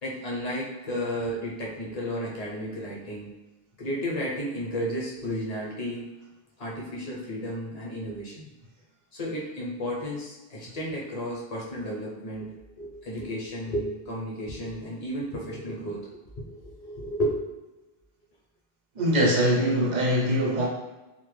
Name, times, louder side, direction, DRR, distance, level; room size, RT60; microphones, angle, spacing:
voice 1, 0.0-3.3 3.8-6.1 6.6-8.5 9.1-12.5 12.8-16.0 16.4-17.3, equal, 45° left, -5 dB, 0.6 m, -33 dB
voice 2, 19.0-20.7, equal, 55° right, -2 dB, 0.6 m, -22 dB
2.1 x 2.0 x 3.1 m, 1.1 s
omnidirectional pair, 1.0 m